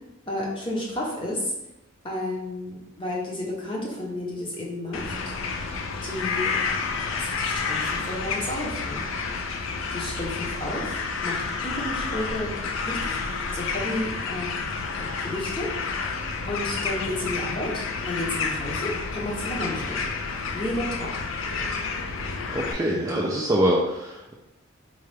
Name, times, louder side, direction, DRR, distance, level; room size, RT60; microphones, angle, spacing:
voice 1, 0.3-1.5 2.0-5.2 6.0-6.6 7.1-9.1 9.9-12.5 12.8-14.5 14.9-20.1 20.5-21.1, left 1 dB, 25° left, -4 dB, 0.8 m, -32 dB
sound 1, 4.9-22.7, left 4 dB, 70° left, 0.4 m, -30 dB
voice 2, 22.5-24.3, equal, 15° right, -3 dB, 0.3 m, -24 dB
4.0 x 2.3 x 3.2 m, 0.91 s
head